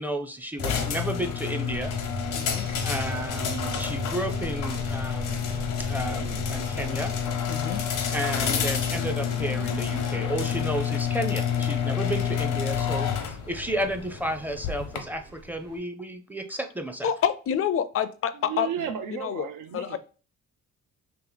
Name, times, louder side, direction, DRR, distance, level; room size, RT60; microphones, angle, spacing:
voice 1, 0.0-1.9 2.8-5.4 5.8-7.1 8.1-17.1, right 1 dB, 5° right, 6 dB, 0.5 m, -32 dB
sound 1, 0.6-15.0, left 8 dB, 90° left, 0.9 m, -29 dB
sound 2, 1.7-15.8, right 2 dB, 55° right, 1.1 m, -40 dB
voice 2, 2.3-2.7 7.5-7.8 17.0-18.7 19.1-19.5 19.7-20.0, left 9 dB, 50° left, 13 dB, 0.4 m, -27 dB
voice 3, 18.3-20.0, right 9 dB, 85° right, 7 dB, 0.7 m, -34 dB
3.3 x 3.0 x 3.9 m, 0.36 s
cardioid pair, 90°, 30 cm